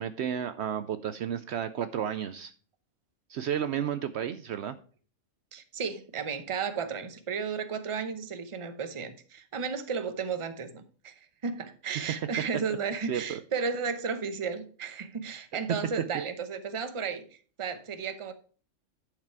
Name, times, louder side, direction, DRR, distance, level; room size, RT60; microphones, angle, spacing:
voice 1, 0.0-2.5 3.3-4.7 13.1-13.4, right 9 dB, 65° right, 11 dB, 0.8 m, -32 dB
voice 2, 5.5-17.2 17.6-18.3, right 5 dB, 30° right, 9 dB, 0.7 m, -34 dB
11.0 x 4.9 x 4.6 m, 0.42 s
omnidirectional pair, 1.3 m